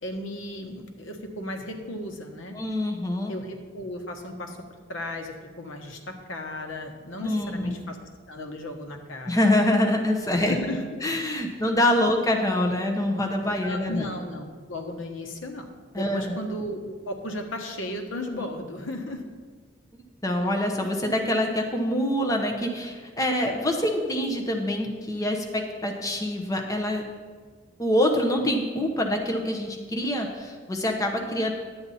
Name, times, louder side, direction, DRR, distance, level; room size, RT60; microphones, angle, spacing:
voice 1, 0.0-2.6 3.3-4.6 4.9-8.0 8.3-9.4 10.3-10.8 13.6-15.6 15.9-19.2, left 1 dB, 85° left, 4 dB, 1.2 m, -35 dB
voice 2, 2.5-3.3 7.2-7.7 9.3-10.6 11.0-14.1 15.9-16.4 20.2-27.0 27.8-31.5, left 1 dB, 15° left, 2 dB, 0.9 m, -25 dB
11.0 x 8.7 x 4.2 m, 1.5 s
head